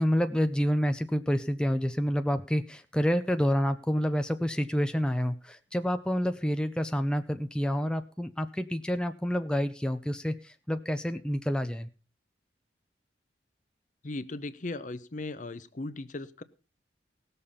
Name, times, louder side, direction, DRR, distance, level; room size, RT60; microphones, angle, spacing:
voice 1, 0.0-11.9, equal, 5° left, 8 dB, 0.5 m, -28 dB
voice 2, 14.0-16.4, left 2 dB, 45° left, 13 dB, 0.7 m, -37 dB
18.0 x 6.8 x 5.6 m, 0.36 s
head